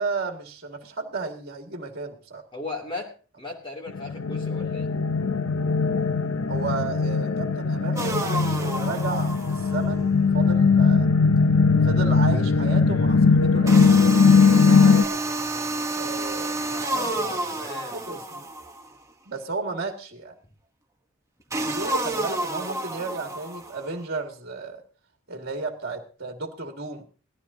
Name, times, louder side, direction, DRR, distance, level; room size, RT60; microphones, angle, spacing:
voice 1, 0.0-2.4 6.5-11.1 11.8-15.2 16.0-17.3 17.9-18.4 19.3-20.3 21.6-24.8 25.3-27.0, right 3 dB, 50° right, 4 dB, 2.0 m, -33 dB
voice 2, 2.5-4.9 16.7-18.1, left 2 dB, 25° left, -2 dB, 2.7 m, -36 dB
sound 1, 3.9-15.0, left 4 dB, 80° left, 0.7 m, -20 dB
sound 2, 8.0-9.9 13.7-18.9 21.5-23.9, right 2 dB, 15° right, 1.1 m, -30 dB
18.5 x 14.0 x 2.8 m, 0.36 s
head